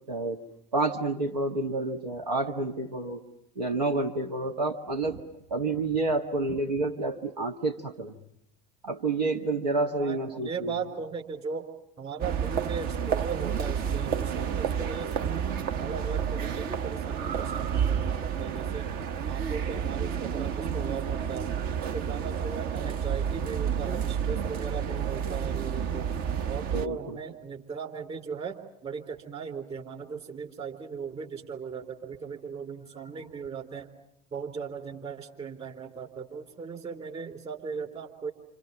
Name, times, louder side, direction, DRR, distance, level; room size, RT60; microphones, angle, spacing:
voice 1, 0.1-0.4 0.7-3.2 3.6-5.2 5.5-8.2 8.8-10.7 26.7-27.2, right 3 dB, 80° right, 4 dB, 1.7 m, -29 dB
voice 2, 10.0-11.7 12.0-15.5 15.8-18.9 19.3-21.5 21.9-26.1 26.5-33.9 34.3-38.3, right 6 dB, 30° right, 4 dB, 3.9 m, -38 dB
sound 1, 12.2-26.9, right 8 dB, 45° right, 1.1 m, -30 dB
28.0 x 28.0 x 7.1 m, 0.77 s
figure-of-eight pair, 75°, 21 cm